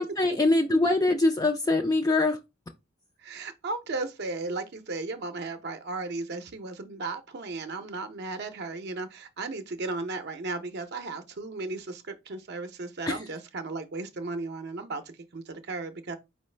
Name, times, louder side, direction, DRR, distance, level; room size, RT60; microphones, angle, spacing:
voice 1, 0.0-2.4 13.1-13.2, left 2 dB, 15° left, 0.3 m, -23 dB
voice 2, 3.2-16.2, right 3 dB, 50° right, 0.6 m, -35 dB
4.7 x 2.9 x 3.2 m
head